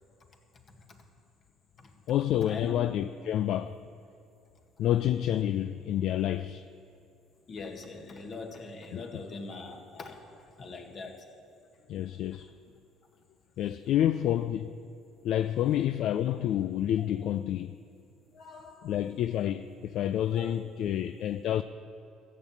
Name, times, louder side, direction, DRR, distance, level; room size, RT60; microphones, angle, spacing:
voice 1, 0.7-1.0 1.8-1.9 2.4-2.8 7.5-10.2 10.6-11.2 18.3-18.9 20.3-20.6, left 3 dB, 45° left, 1.9 m, -42 dB
voice 2, 2.1-3.8 4.8-6.7 8.9-9.0 11.9-12.5 13.6-14.7 15.2-17.7 18.8-21.6, left 11 dB, 65° left, 0.3 m, -28 dB
14.0 x 7.3 x 8.5 m
supercardioid pair, 75°, 0 cm